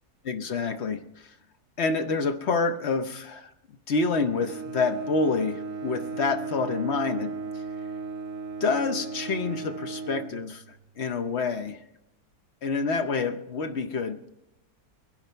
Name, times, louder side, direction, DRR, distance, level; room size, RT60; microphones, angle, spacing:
voice 1, 0.2-1.0 1.8-3.5 3.9-7.3 8.6-10.6 11.0-11.8 12.6-14.3, left 4 dB, 50° left, 8 dB, 1.0 m, -27 dB
Bowed string instrument, 4.3-11.0, right 4 dB, 60° right, 1.0 m, -36 dB
22.0 x 11.0 x 4.5 m, 0.86 s
omnidirectional pair, 1.8 m